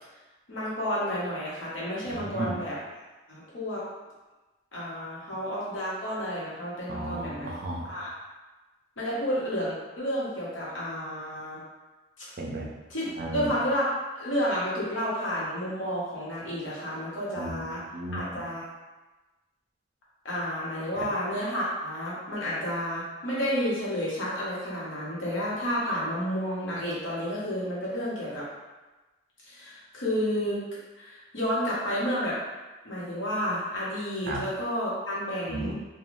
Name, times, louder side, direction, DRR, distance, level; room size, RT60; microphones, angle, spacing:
voice 1, 0.5-2.8 3.3-3.8 4.7-7.5 7.9-8.1 9.0-11.6 12.2-12.3 12.9-17.8 18.1-18.6 20.2-28.5 29.5-30.6 31.0-32.4 32.8-35.7, equal, 80° left, -7 dB, 1.0 m, -31 dB
voice 2, 2.1-2.6 6.9-7.9 12.4-12.7 13.2-13.5 17.4-18.2 34.3-34.4 35.5-35.7, right 2 dB, 50° right, -1 dB, 0.4 m, -34 dB
2.5 x 2.3 x 3.0 m, 1.2 s
head